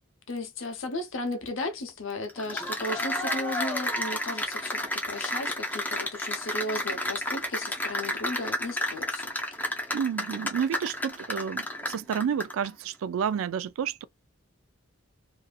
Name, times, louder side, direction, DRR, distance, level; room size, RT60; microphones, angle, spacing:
voice 1, 0.3-4.8 5.1-9.3, left 2 dB, 75° left, 0.8 m, -35 dB
Cheering / Applause, 2.3-12.7, left 1 dB, 10° left, 0.5 m, -31 dB
voice 2, 9.9-14.0, right 7 dB, 90° right, 0.3 m, -30 dB
2.7 x 2.5 x 2.3 m
head